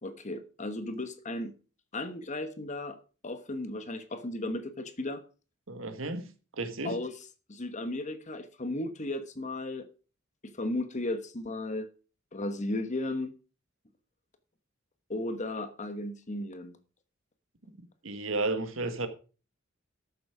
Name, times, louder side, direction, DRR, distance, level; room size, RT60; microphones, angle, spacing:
voice 1, 0.0-1.5 1.9-3.0 3.2-5.2 6.8-7.1 7.5-9.9 10.4-11.9 12.3-13.3 15.1-16.8, left 2 dB, 35° left, 1.1 m, -35 dB
voice 2, 5.7-7.0 18.0-19.1, right 2 dB, 70° right, 1.5 m, -33 dB
13.0 x 7.1 x 4.9 m
head